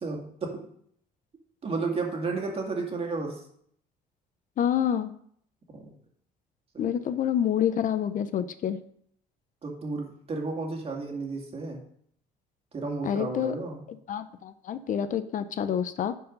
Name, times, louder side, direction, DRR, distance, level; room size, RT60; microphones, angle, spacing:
voice 1, 0.0-0.7 1.6-3.4 5.7-5.9 6.7-7.1 9.6-11.8 12.7-13.8, right 3 dB, 35° right, 1 dB, 2.2 m, -33 dB
voice 2, 4.6-5.1 6.8-8.8 13.0-13.5 14.1-16.1, left 9 dB, 50° left, 12 dB, 0.6 m, -27 dB
11.0 x 4.7 x 5.2 m, 0.66 s
cardioid pair, 110°, 17 cm